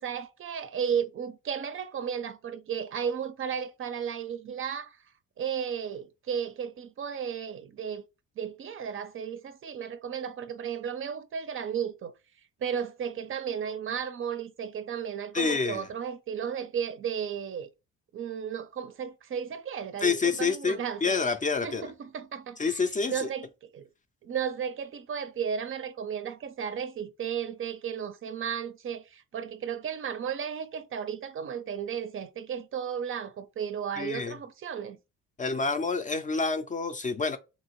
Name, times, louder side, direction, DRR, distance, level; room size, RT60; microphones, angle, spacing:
voice 1, 0.0-5.0 5.4-8.1 8.4-12.1 12.6-17.7 18.1-21.2 21.6-23.9 24.2-35.0, right 7 dB, 45° right, 0.4 m, -34 dB
voice 2, 15.3-15.9 20.0-21.9 22.6-23.3 34.0-34.3 35.4-37.4, left 4 dB, 25° left, 0.4 m, -28 dB
2.8 x 2.7 x 2.9 m
cardioid pair, 90°, 30 cm